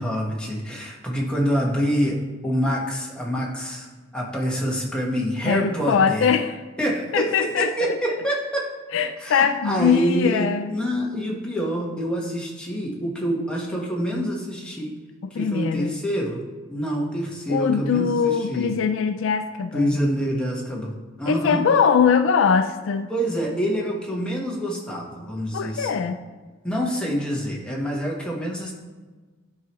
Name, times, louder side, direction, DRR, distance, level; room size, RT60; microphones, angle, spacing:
voice 1, 0.0-2.2 2.4-6.3 6.8-8.7 9.2-14.9 15.3-18.7 19.7-21.6 23.1-26.0 26.6-28.7, equal, 5° left, -3 dB, 1.2 m, -26 dB
voice 2, 5.5-6.6 7.1-8.0 8.9-10.7 15.3-15.9 17.5-19.9 21.3-23.1 25.5-26.2, left 6 dB, 70° left, 9 dB, 0.4 m, -21 dB
11.0 x 4.7 x 3.0 m, 1.3 s
head